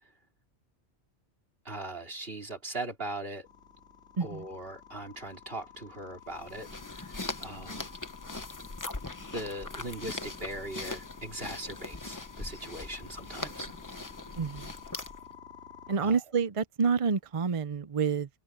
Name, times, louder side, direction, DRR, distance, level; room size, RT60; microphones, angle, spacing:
voice 1, 1.6-3.5 4.2-8.0 9.3-13.7 16.0-16.2, right 1 dB, 60° right, 4.1 m, -40 dB
sound 1, 3.4-16.0, left 8 dB, 85° left, 3.7 m, -51 dB
sound 2, 6.3-15.3, left 2 dB, 20° left, 0.8 m, -41 dB
voice 2, 14.4-14.7 15.9-18.3, right 5 dB, 40° right, 0.6 m, -28 dB
omnidirectional pair, 1.1 m